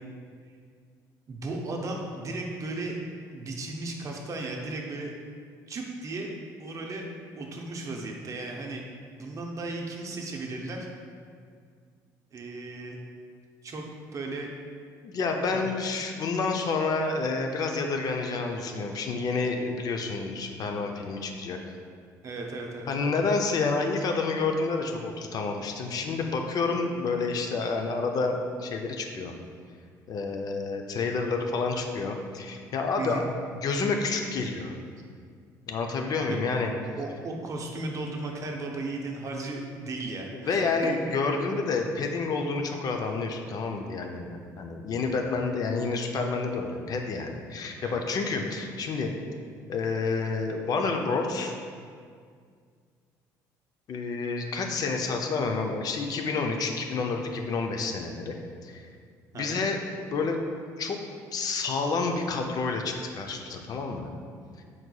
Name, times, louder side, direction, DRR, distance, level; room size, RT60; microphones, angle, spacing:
voice 1, 1.3-3.0 3.3-5.1 5.7-6.3 6.6-7.1 7.4-8.8 9.2-10.9 12.3-13.0 13.6-13.8 14.1-14.5 15.5-15.6 22.2-23.0 33.0-33.3 36.3-36.4 37.0-41.0 47.8-48.0 59.3-59.6, right 2 dB, 40° right, 1 dB, 0.6 m, -35 dB
voice 2, 15.0-21.6 22.9-29.3 30.1-34.7 35.7-36.7 40.3-49.1 49.7-51.5 53.9-58.8 59.3-59.8 60.1-60.4 60.8-61.0 61.3-64.1 64.6-64.7, left 4 dB, 50° left, 3 dB, 0.4 m, -29 dB
4.6 x 3.9 x 2.2 m, 2.1 s
supercardioid pair, 80°, 8 cm